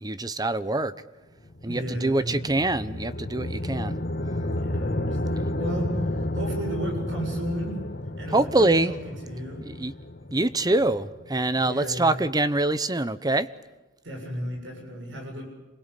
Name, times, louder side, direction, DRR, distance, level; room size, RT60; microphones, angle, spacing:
voice 1, 0.0-0.9 1.6-4.0 8.3-8.9 9.6-9.9 10.3-13.5, right 2 dB, 20° right, 14 dB, 0.9 m, -24 dB
sound 1, 1.4-11.7, left 1 dB, 55° left, 1.6 m, -32 dB
voice 2, 1.6-2.4 3.5-3.9 4.5-7.7 8.2-9.6 11.5-12.2 14.0-15.4, right 1 dB, 80° right, 2 dB, 7.6 m, -34 dB
27.5 x 21.5 x 8.4 m, 1.1 s
head